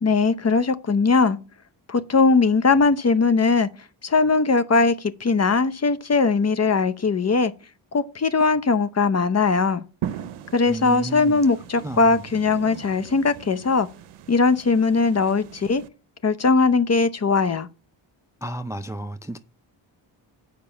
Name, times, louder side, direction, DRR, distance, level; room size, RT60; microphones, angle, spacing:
voice 1, 0.0-1.4 1.9-3.7 4.0-7.5 7.9-9.8 10.5-13.9 14.3-15.8 16.2-17.7, left 4 dB, 30° left, 0.7 m, -20 dB
sound 1, 10.0-15.9, right 10 dB, 90° right, 0.7 m, -39 dB
voice 2, 10.7-11.5 11.8-12.2 18.4-19.4, right 1 dB, 5° right, 0.4 m, -33 dB
6.9 x 5.2 x 5.6 m
cardioid pair, 65°, 49 cm